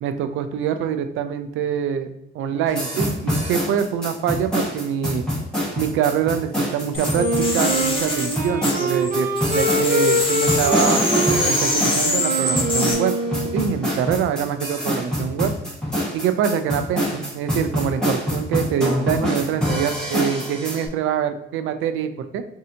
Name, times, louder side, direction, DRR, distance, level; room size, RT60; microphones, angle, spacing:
voice 1, 0.0-5.2 5.8-11.0 11.5-13.1 13.5-15.5 16.1-22.4, right 8 dB, 85° right, 9 dB, 0.4 m, -24 dB
sound 1, 2.7-20.9, equal, 5° left, 1.4 m, -25 dB
sound 2, 6.9-9.1 9.4-12.9, left 2 dB, 25° left, 1.0 m, -25 dB
Wind instrument woodwind instrument, 7.2-13.8, right 1 dB, 45° right, 0.9 m, -24 dB
4.1 x 2.7 x 2.7 m, 0.82 s
cardioid pair, 90°, 20 cm